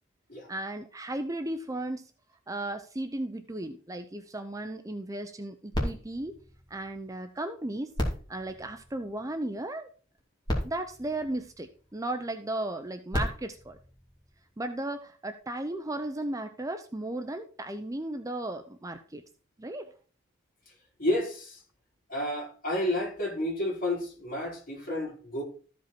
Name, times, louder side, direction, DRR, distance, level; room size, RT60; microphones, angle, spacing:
voice 1, 0.5-2.1 2.5-6.3 6.7-7.9 8.3-9.9 10.6-13.8 14.6-19.2 19.6-19.9, right 1 dB, 15° right, 0.6 m, -35 dB
sound 1, 5.7-7.4 7.9-9.5 10.2-10.3 10.4-12.0 12.8-14.7 15.4-15.5, equal, 20° left, 2.8 m, -35 dB
voice 2, 21.0-21.6 22.1-25.4, left 1 dB, 45° left, 4.4 m, -31 dB
14.0 x 5.2 x 4.5 m
head